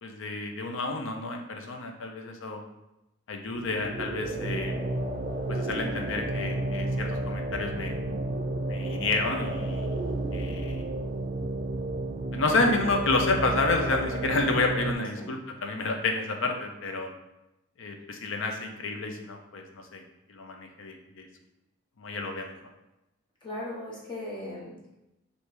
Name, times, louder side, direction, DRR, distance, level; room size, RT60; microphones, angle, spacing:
voice 1, 0.0-2.6 3.3-4.8 5.5-7.9 8.7-10.0 10.3-10.9 12.3-17.1 17.8-20.0 20.3-21.3 22.0-22.5, left 3 dB, 65° left, 3 dB, 0.6 m, -30 dB
sound 1, 3.5-15.0, right 2 dB, 40° right, 0.4 m, -31 dB
voice 2, 23.4-24.9, left 1 dB, 20° left, -4 dB, 0.7 m, -38 dB
3.3 x 2.7 x 4.4 m, 0.93 s
head